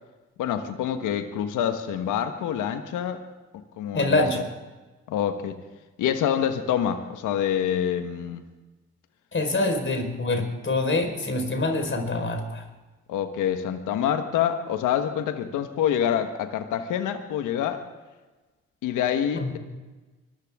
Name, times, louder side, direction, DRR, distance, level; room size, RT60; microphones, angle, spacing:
voice 1, 0.4-3.2 3.5-4.4 5.1-5.6 6.0-8.4 13.1-17.8 18.8-19.6, left 9 dB, 80° left, 8 dB, 1.5 m, -26 dB
voice 2, 3.9-4.4 9.3-12.6 19.3-19.5, left 2 dB, 40° left, 4 dB, 4.8 m, -25 dB
24.5 x 14.5 x 3.7 m, 1.2 s
supercardioid pair, 55°, 30 cm